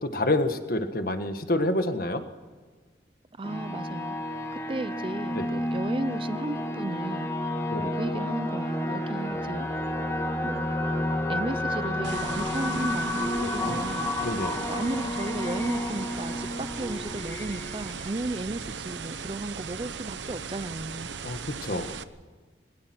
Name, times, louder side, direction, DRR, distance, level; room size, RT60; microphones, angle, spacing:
voice 1, 0.0-2.2 5.3-5.5 7.7-7.9 13.6-13.8 14.2-14.6 21.2-22.0, left 1 dB, 55° left, 8 dB, 1.6 m, -28 dB
sound 1, 3.4-18.8, left 1 dB, 15° left, 2.1 m, -31 dB
voice 2, 3.4-7.3 7.9-9.7 10.4-10.7 11.3-14.1 14.7-21.1, right 2 dB, 30° right, 15 dB, 0.6 m, -34 dB
sound 2, 12.0-22.0, right 6 dB, 90° right, 1.0 m, -38 dB
21.5 x 21.5 x 6.2 m, 1.4 s
head